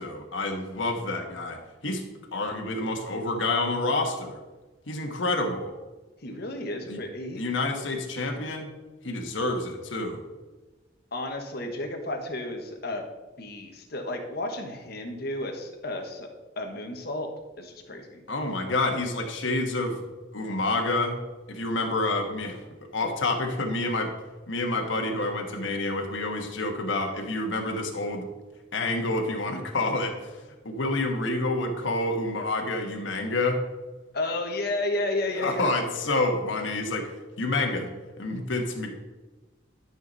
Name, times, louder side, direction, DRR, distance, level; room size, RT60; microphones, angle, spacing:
voice 1, 0.0-2.0 2.3-4.4 4.9-5.7 6.9-7.0 7.4-8.7 9.0-10.2 18.3-20.0 20.3-21.2 21.5-22.6 22.9-24.1 24.5-28.3 28.7-30.2 30.6-33.6 35.4-37.1 37.4-37.9 38.2-38.9, left 2 dB, 85° left, 2 dB, 1.4 m, -28 dB
voice 2, 6.2-7.4 11.1-13.0 13.4-16.3 16.6-17.3 17.6-18.2 34.1-35.7, left 2 dB, 55° left, 3 dB, 1.4 m, -32 dB
12.0 x 5.9 x 4.1 m, 1.2 s
head